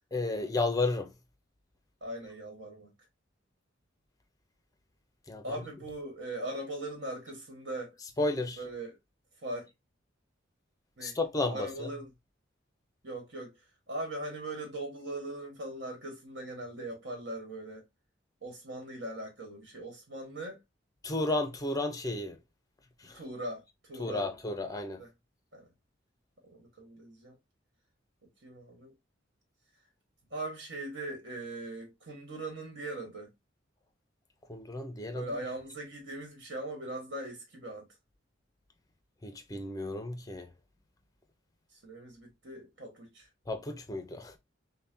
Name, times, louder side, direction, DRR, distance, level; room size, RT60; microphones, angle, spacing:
voice 1, 0.1-1.1 5.3-5.6 8.2-8.6 11.0-11.9 21.0-22.4 23.0-23.2 24.0-25.0 34.5-35.3 39.2-40.5 43.5-44.4, left 2 dB, 20° left, 0.6 m, -32 dB
voice 2, 2.0-2.9 5.4-8.0 8.6-9.0 9.4-9.7 11.0-11.2 11.5-12.1 13.0-13.6 13.9-17.8 18.4-20.6 23.0-23.6 23.9-24.3 25.0-25.1 25.5-25.7 26.5-27.4 28.4-28.9 30.3-33.3 35.1-37.9 41.7-43.3, right 1 dB, 60° right, 1.4 m, -40 dB
5.5 x 2.2 x 2.7 m
head